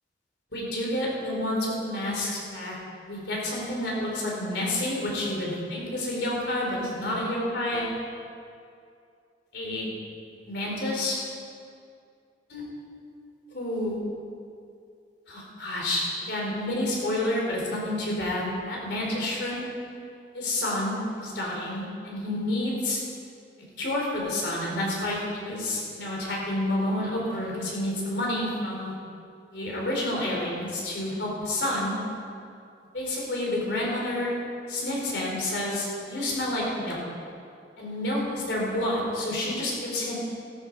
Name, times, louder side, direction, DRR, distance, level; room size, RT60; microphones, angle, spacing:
voice 1, 0.5-2.7 3.1-7.9 9.5-9.9 10.4-11.2 12.5-12.7 13.5-14.0 15.3-19.6 20.3-23.0 23.8-28.9 29.5-32.0 32.9-34.3 34.7-37.0 37.8-40.1, left 1 dB, 70° left, -3 dB, 4.5 m, -29 dB
14.5 x 13.5 x 5.0 m, 2.4 s
head